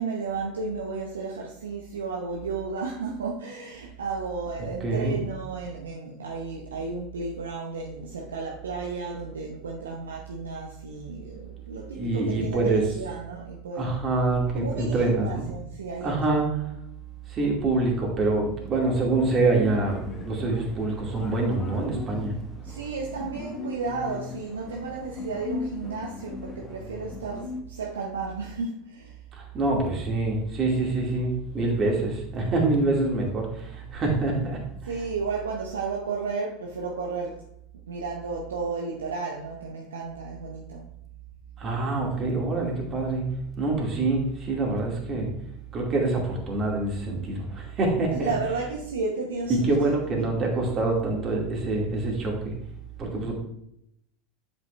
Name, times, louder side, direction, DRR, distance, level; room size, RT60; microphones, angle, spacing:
voice 1, 0.0-14.0 14.5-16.4 22.6-29.2 34.8-37.5 37.9-40.8 48.1-49.7, right 4 dB, 85° right, -1 dB, 0.8 m, -33 dB
voice 2, 4.8-5.2 12.0-12.8 13.8-15.5 16.0-16.7 17.3-22.3 29.3-34.9 41.6-45.3 45.7-48.3 49.5-52.5 53.0-53.4, right 2 dB, 35° right, -1 dB, 2.5 m, -25 dB
sound 1, 19.2-27.6, left 4 dB, 30° left, 1.3 m, -39 dB
7.8 x 5.3 x 3.3 m, 0.75 s
hypercardioid pair, 80°, 0 cm